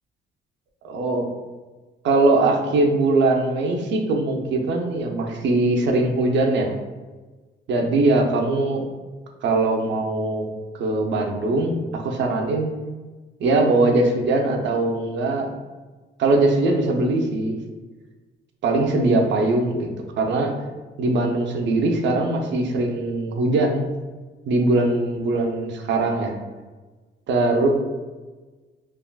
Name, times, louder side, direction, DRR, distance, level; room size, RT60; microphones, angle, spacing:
voice 1, 0.8-1.2 2.0-6.7 7.7-8.8 9.4-10.4 10.7-12.7 13.4-15.5 16.2-17.5 18.6-19.9 20.2-20.5 21.0-23.9 24.5-26.3 27.3-27.7, right 2 dB, 65° right, 3 dB, 0.5 m, -21 dB
3.4 x 2.4 x 2.2 m, 1.3 s
cardioid pair, 90°, 20 cm